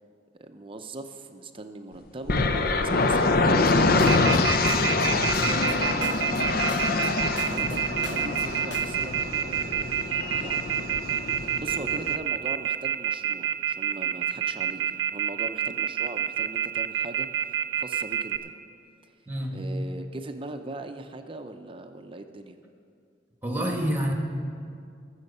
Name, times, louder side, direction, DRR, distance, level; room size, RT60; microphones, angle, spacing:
voice 1, 0.4-3.8 5.3-6.6 7.4-9.9 10.3-11.3 11.5-18.5 19.0-19.1 19.5-22.6, right 2 dB, 30° right, 6 dB, 0.6 m, -40 dB
sound 1, 2.3-12.2, left 3 dB, 55° left, 0.6 m, -25 dB
sound 2, 3.7-4.4 4.7-5.8 6.0-7.1 7.4-8.5 8.7-9.1, left 3 dB, 85° left, 1.0 m, -42 dB
Telephone, 4.1-18.4, right 8 dB, 85° right, 0.7 m, -27 dB
voice 2, 4.7-5.5 7.6-7.7 19.3-19.8 23.4-24.1, equal, 10° right, 2 dB, 1.6 m, -30 dB
20.5 x 7.2 x 5.5 m, 2.3 s
head